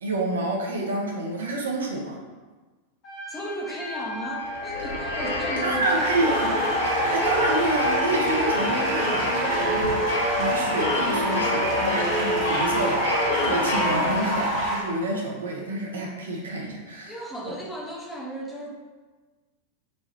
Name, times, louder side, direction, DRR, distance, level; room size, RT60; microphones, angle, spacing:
voice 1, 0.0-2.2 5.6-6.6 7.1-13.1 13.4-17.2, right 2 dB, 65° right, -1 dB, 0.6 m, -28 dB
Trumpet, 3.0-9.8, left 2 dB, 35° left, 1.3 m, -37 dB
voice 2, 3.3-6.1 17.1-18.7, right 1 dB, 5° left, -2 dB, 0.6 m, -35 dB
sound 1, 4.2-14.6, left 1 dB, 70° left, 0.8 m, -28 dB
sound 2, 5.8-14.8, equal, 40° right, 1.1 m, -27 dB
3.2 x 2.3 x 4.0 m, 1.3 s
figure-of-eight pair, 90°, 0 cm